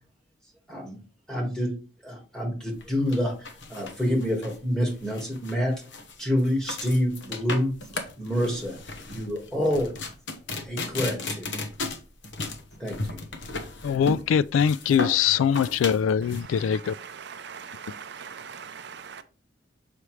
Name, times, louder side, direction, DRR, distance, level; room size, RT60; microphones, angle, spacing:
voice 1, 0.7-1.0 1.3-1.7 2.0-5.7 6.2-8.8 9.1-9.9 10.7-11.6 12.8-13.2, equal, 5° left, 1.6 m, -27 dB
sound 1, 2.8-16.4, left 3 dB, 65° left, 1.1 m, -35 dB
voice 2, 13.8-16.9, left 8 dB, 90° left, 0.3 m, -22 dB
voice 3, 16.4-19.2, right 6 dB, 60° right, 0.5 m, -41 dB
6.9 x 4.9 x 3.1 m
head